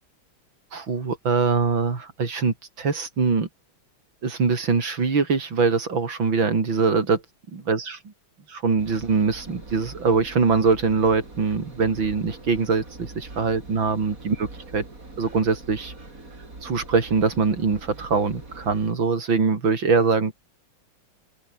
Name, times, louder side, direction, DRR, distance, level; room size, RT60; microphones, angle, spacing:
voice 1, 0.7-3.5 4.2-7.2 7.5-8.0 8.5-14.5 14.7-14.8 15.2-15.9 16.6-20.3, right 4 dB, 65° right, 4.2 m, -23 dB
Engine, 8.8-18.9, right 2 dB, 40° right, 5.4 m, -43 dB
open air
omnidirectional pair, 2.3 m